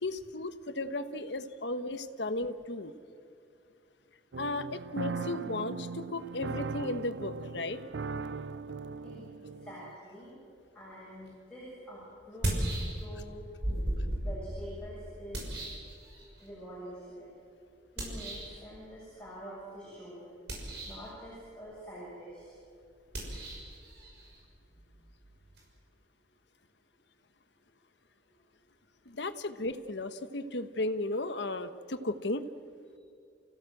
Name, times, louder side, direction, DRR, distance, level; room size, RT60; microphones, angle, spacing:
voice 1, 0.0-2.9 4.4-7.8 29.0-32.4, left 2 dB, 75° left, 10 dB, 1.2 m, -35 dB
sound 1, 4.3-10.0, right 4 dB, 80° right, 0.5 m, -39 dB
voice 2, 9.0-9.3 9.6-10.3 10.7-12.0 12.3-12.6 13.0-13.4 14.2-15.6 16.4-17.4 17.9-20.2 20.8-22.6 28.3-28.4, equal, 5° left, -9 dB, 7.3 m, -46 dB
sound 2, 11.3-11.4 12.2-13.3 13.6-16.5 18.0-18.6 20.3-21.1 23.1-25.7, right 1 dB, 65° right, 6.1 m, -36 dB
29.0 x 16.5 x 7.8 m, 2.5 s
head